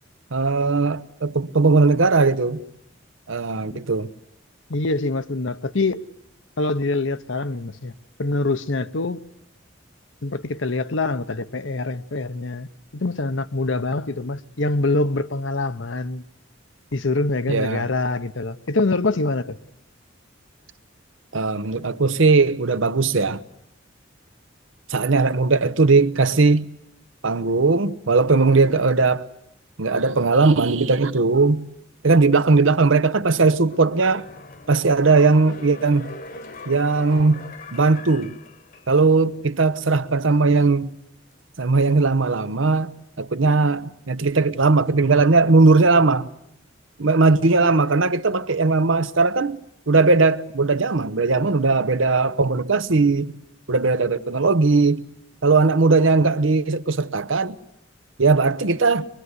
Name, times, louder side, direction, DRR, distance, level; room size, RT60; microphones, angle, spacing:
voice 1, 0.3-2.6 3.3-4.1 17.5-17.9 21.3-23.4 24.9-26.7 27.2-29.3 29.8-31.7 32.0-34.2 34.7-36.1 36.7-37.4 37.7-38.3 38.9-40.9 41.6-42.9 43.2-46.3 47.0-53.4 53.7-55.1 55.4-57.6 58.2-59.1, right 3 dB, 80° right, 0.9 m, -18 dB
voice 2, 4.7-6.0 6.6-7.9 8.2-9.2 10.2-12.7 12.9-16.2 16.9-19.6, left 2 dB, 70° left, 0.9 m, -24 dB
sound 1, 33.6-39.2 39.6-39.7, left 3 dB, 45° left, 1.4 m, -41 dB
23.5 x 22.5 x 9.6 m
head